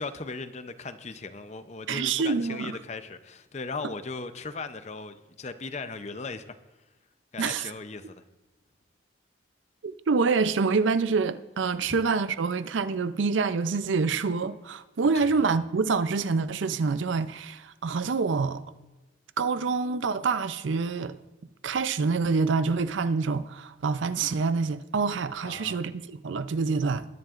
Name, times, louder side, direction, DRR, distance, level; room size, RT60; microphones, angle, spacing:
voice 1, 0.0-6.6 7.3-8.2 11.9-12.0 15.1-15.3 25.4-25.9, left 3 dB, 35° left, 0.6 m, -38 dB
voice 2, 1.9-2.8 7.4-7.7 9.8-18.6 19.4-21.2 21.6-27.1, right 4 dB, 80° right, 0.5 m, -26 dB
20.0 x 10.5 x 2.5 m
head